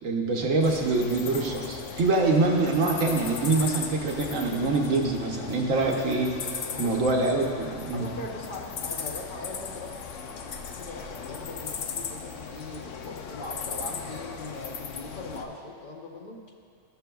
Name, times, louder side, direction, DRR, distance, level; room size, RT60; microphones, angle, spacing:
voice 1, 0.0-6.3 6.8-8.1, right 3 dB, 85° right, 0 dB, 1.3 m, -25 dB
sound 1, 0.6-15.4, left 6 dB, 80° left, 1.0 m, -37 dB
voice 2, 6.7-7.2 7.9-10.0 10.8-16.4, left 2 dB, 50° left, 0 dB, 0.7 m, -40 dB
13.5 x 6.8 x 2.3 m, 2.4 s
omnidirectional pair, 1.3 m